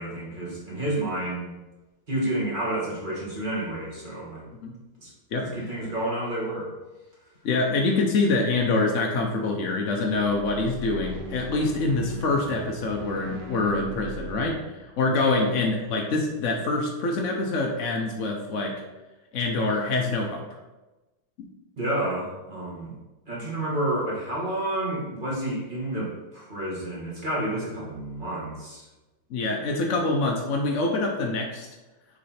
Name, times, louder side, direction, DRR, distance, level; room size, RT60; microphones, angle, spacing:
voice 1, 0.0-1.5 2.1-4.4 5.0-5.1 5.4-6.7 21.8-23.0 23.3-28.9, right 1 dB, 25° right, -6 dB, 1.6 m, -30 dB
voice 2, 7.4-14.6 15.0-18.8 19.3-20.4 21.4-21.5 29.3-31.7, left 3 dB, 65° left, 0 dB, 0.7 m, -25 dB
sound 1, 9.9-16.2, right 3 dB, 90° right, 1.7 m, -40 dB
6.5 x 3.8 x 4.2 m, 1.1 s
omnidirectional pair, 2.2 m